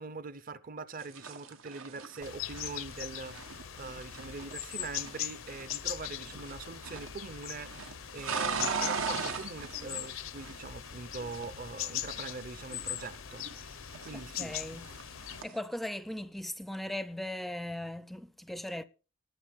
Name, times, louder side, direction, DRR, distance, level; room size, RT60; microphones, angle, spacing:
voice 1, 0.0-14.5, right 3 dB, 45° right, 0.7 m, -43 dB
sound 1, 1.0-5.9 6.2-7.2 7.4-10.9 11.2-13.6 13.9-15.6, right 5 dB, 85° right, 1.3 m, -39 dB
sound 2, 2.2-15.4, left 11 dB, 80° left, 0.6 m, -40 dB
voice 2, 14.4-14.9 15.4-18.8, left 1 dB, ahead, 0.4 m, -38 dB
19.0 x 7.2 x 3.6 m
head